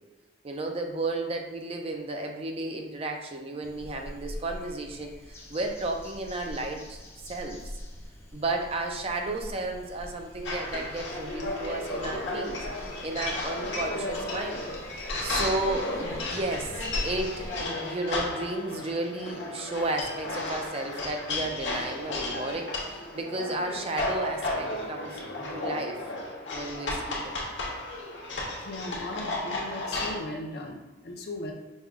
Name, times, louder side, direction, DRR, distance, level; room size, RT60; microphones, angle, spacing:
voice 1, 0.4-7.6 8.3-14.7 15.2-25.2 25.5-26.0 26.5-27.4, right 2 dB, 35° right, 3 dB, 0.5 m, -33 dB
sound 1, 3.6-17.7, equal, 15° left, 0.5 m, -43 dB
sound 2, 10.5-30.2, left 2 dB, 85° left, 0.9 m, -33 dB
voice 2, 28.6-31.5, left 1 dB, 60° left, 1 dB, 0.6 m, -38 dB
5.3 x 2.3 x 3.5 m, 1.2 s
head